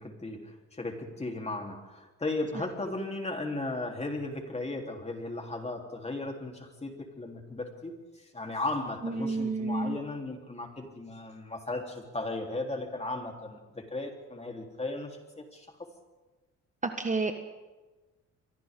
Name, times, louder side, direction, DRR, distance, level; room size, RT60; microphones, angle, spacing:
voice 1, 0.0-7.9 8.3-15.9, left 2 dB, 20° left, 2 dB, 3.7 m, -36 dB
voice 2, 9.0-10.0 16.8-17.3, right 3 dB, 25° right, 6 dB, 1.4 m, -30 dB
29.5 x 24.0 x 3.8 m, 1.2 s
cardioid pair, 90°, 30 cm